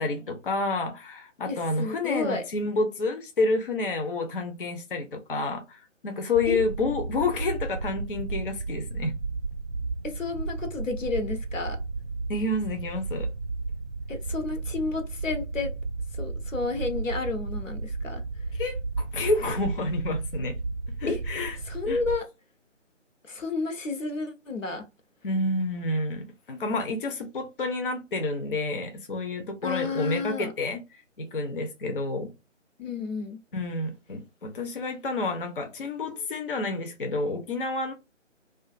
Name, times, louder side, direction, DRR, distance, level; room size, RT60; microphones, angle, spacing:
voice 1, 0.0-9.1 12.3-13.3 18.5-20.6 21.0-21.6 21.9-22.0 25.2-32.3 33.5-37.9, left 2 dB, 45° left, 0.5 m, -29 dB
voice 2, 1.5-2.4 6.5-6.6 10.0-11.8 14.1-15.7 16.2-18.2 21.1-21.2 21.6-22.3 23.2-24.9 29.6-30.5 32.8-33.4, left 3 dB, 85° left, 0.9 m, -31 dB
sound 1, 6.3-22.2, right 3 dB, 45° right, 0.6 m, -33 dB
2.4 x 2.4 x 2.4 m
figure-of-eight pair, 150°, 37 cm